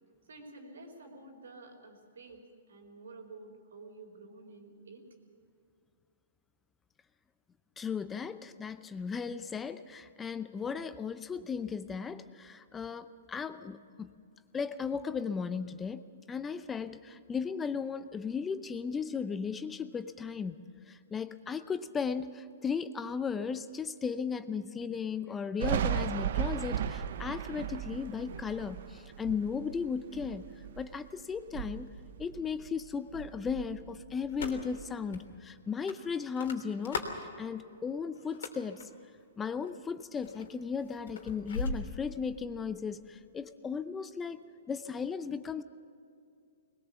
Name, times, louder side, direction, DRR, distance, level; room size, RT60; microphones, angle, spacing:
voice 1, 0.3-5.1, right 3 dB, 85° right, 3 dB, 4.4 m, -50 dB
voice 2, 7.8-14.1 14.5-16.0 16.3-20.5 20.9-30.5 30.8-31.9 32.2-37.0 37.4-38.9 39.4-44.4 44.7-45.6, left 6 dB, 15° left, 13 dB, 0.6 m, -36 dB
Thunder, 25.6-31.0 31.4-32.9 33.1-34.8, right 9 dB, 60° right, 0.9 m, -36 dB
sound 1, 34.3-34.8 35.1-35.2 35.9-37.2 38.2-38.8 39.6-39.9 40.2-42.4, left 3 dB, 75° left, 3.0 m, -38 dB
21.0 x 20.0 x 7.1 m, 2.4 s
hypercardioid pair, 140°, 0 cm